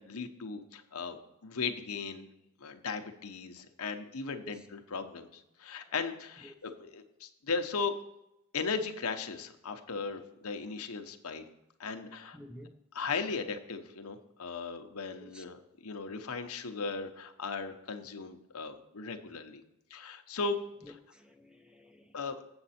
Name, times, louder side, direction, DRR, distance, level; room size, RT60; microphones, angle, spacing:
voice 1, 0.0-2.3 2.6-5.3 5.6-7.9 8.5-11.5 11.8-12.4 12.9-19.6 19.9-21.0 22.1-22.4, left 4 dB, 80° left, 6 dB, 0.9 m, -37 dB
voice 2, 12.3-12.8 15.2-15.4 20.8-22.2, equal, 5° right, 6 dB, 0.6 m, -51 dB
7.8 x 7.3 x 4.3 m, 0.83 s
head